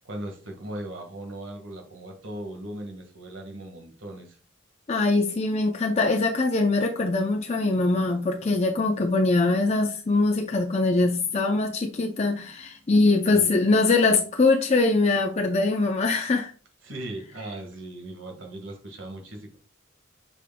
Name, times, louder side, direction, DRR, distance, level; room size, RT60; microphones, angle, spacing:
voice 1, 0.0-4.4 13.3-13.6 16.8-19.6, right 1 dB, 75° right, 1.7 m, -38 dB
voice 2, 4.9-16.5, left 3 dB, 35° left, 0.5 m, -22 dB
8.7 x 5.0 x 2.2 m
head